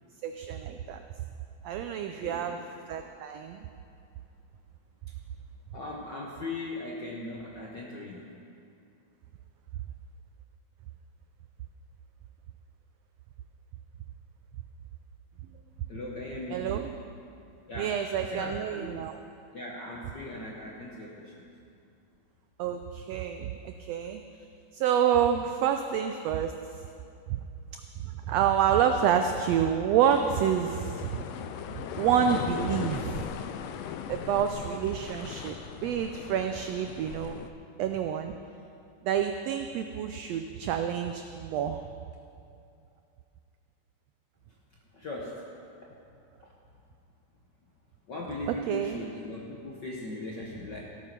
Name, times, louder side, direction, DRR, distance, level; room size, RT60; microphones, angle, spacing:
voice 1, 0.2-1.0 1.6-2.6 2.9-3.7 16.5-16.9 17.8-19.2 22.6-24.2 24.7-26.5 28.3-31.1 32.0-33.3 34.1-35.6 35.8-37.4 37.8-38.3 39.0-41.8 48.7-49.1, right 8 dB, 85° right, 6 dB, 1.4 m, -28 dB
voice 2, 1.9-2.5 5.7-8.2 15.9-16.7 17.7-19.0 19.5-21.4 44.9-45.4 48.1-50.8, left 2 dB, 60° left, -3 dB, 1.1 m, -39 dB
sound 1, 30.0-37.5, left 8 dB, 80° left, 1.5 m, -38 dB
15.0 x 9.0 x 6.0 m, 2.5 s
omnidirectional pair, 3.6 m